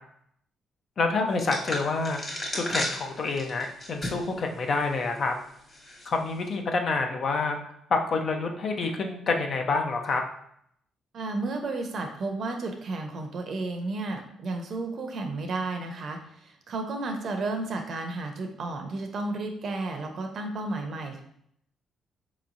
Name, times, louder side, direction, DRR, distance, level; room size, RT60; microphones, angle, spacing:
voice 1, 1.0-2.2 2.5-5.3 6.1-10.2, left 3 dB, 50° left, 4 dB, 0.6 m, -28 dB
sound 1, 1.4-4.4 4.8-4.9 5.7-6.1, left 1 dB, 25° left, 1.2 m, -34 dB
voice 2, 11.1-21.2, right 2 dB, 55° right, 4 dB, 0.7 m, -32 dB
4.4 x 3.0 x 2.5 m, 0.69 s
cardioid pair, 105°, 0 cm